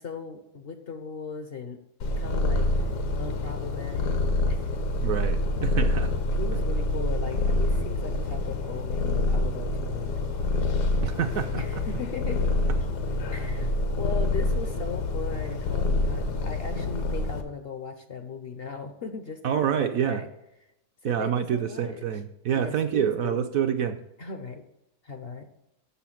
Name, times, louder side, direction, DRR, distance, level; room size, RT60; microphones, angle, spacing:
voice 1, 0.0-1.8 2.2-2.7 3.2-4.2 4.5-4.6 6.3-10.3 11.5-12.5 13.3-20.3 21.0-22.0 22.6-23.4 24.2-24.6 25.0-25.5, left 5 dB, 55° left, 7 dB, 0.7 m, -38 dB
Purr, 2.0-17.4, left 2 dB, 75° left, 1.5 m, -27 dB
voice 2, 5.0-6.1 11.0-11.8 19.4-20.2 21.0-24.0, right 9 dB, 70° right, 7 dB, 0.9 m, -27 dB
7.0 x 6.8 x 5.7 m, 0.91 s
omnidirectional pair, 1.8 m